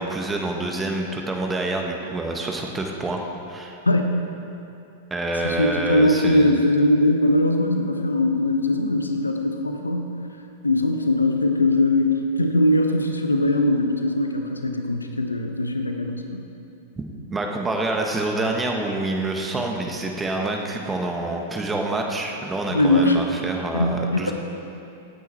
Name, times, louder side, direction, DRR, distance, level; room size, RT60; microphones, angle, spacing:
voice 1, 0.0-3.2 3.5-3.8 5.1-6.6 17.0-17.1 17.3-24.3, right 2 dB, 15° right, 1 dB, 1.7 m, -27 dB
voice 2, 5.4-10.1 10.6-16.4 22.7-23.3 23.7-24.3, left 1 dB, 90° left, 5 dB, 1.1 m, -21 dB
17.0 x 9.5 x 4.5 m, 2.7 s
figure-of-eight pair, 95°, 0 cm